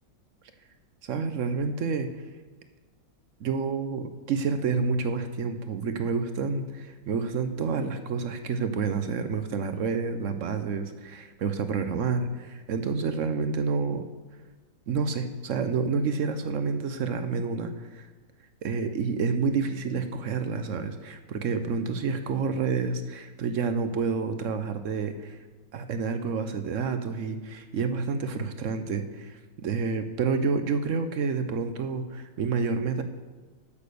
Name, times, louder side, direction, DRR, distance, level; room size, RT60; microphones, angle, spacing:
voice 1, 1.0-2.2 3.4-14.1 14.9-18.1 18.6-25.4 25.7-33.0, right 5 dB, 60° right, 9 dB, 0.8 m, -29 dB
10.0 x 6.7 x 6.8 m, 1.3 s
omnidirectional pair, 2.0 m